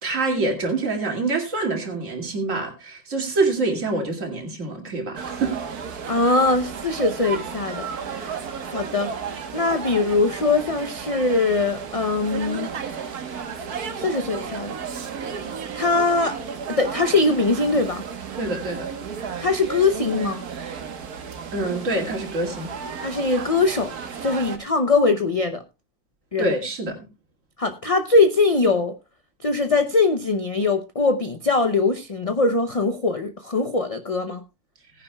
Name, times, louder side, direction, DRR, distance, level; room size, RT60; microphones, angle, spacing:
voice 1, 0.0-5.6 18.4-18.9 21.5-22.7 26.4-27.0, right 2 dB, 55° right, 2.7 m, -25 dB
sound 1, 5.2-24.6, right 6 dB, 85° right, 1.8 m, -33 dB
voice 2, 6.1-9.1 9.5-12.7 14.0-14.7 15.7-16.4 16.7-18.0 19.4-20.4 23.0-23.9 24.2-25.6 26.3-26.5 27.6-28.9 29.4-34.4, left 3 dB, 35° left, 0.5 m, -22 dB
18.0 x 10.0 x 2.3 m
omnidirectional pair, 1.6 m